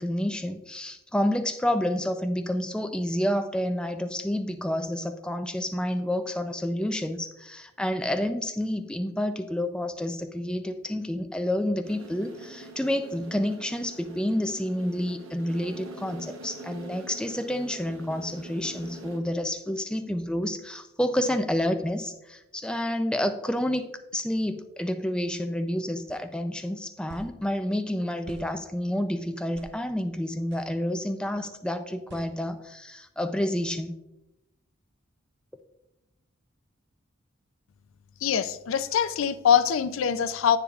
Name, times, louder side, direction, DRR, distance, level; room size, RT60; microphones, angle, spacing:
voice 1, 0.0-34.0, left 1 dB, 5° left, 7 dB, 0.3 m, -29 dB
sound 1, 11.8-19.2, right 2 dB, 85° right, 1.0 m, -44 dB
sound 2, 26.1-26.2 27.1-27.4 28.3-28.5 29.5-29.8 30.5-30.7 32.1-32.3, right 2 dB, 55° right, 0.6 m, -46 dB
voice 2, 38.2-40.6, left 8 dB, 75° left, 14 dB, 0.4 m, -23 dB
10.0 x 8.5 x 2.4 m, 0.94 s
head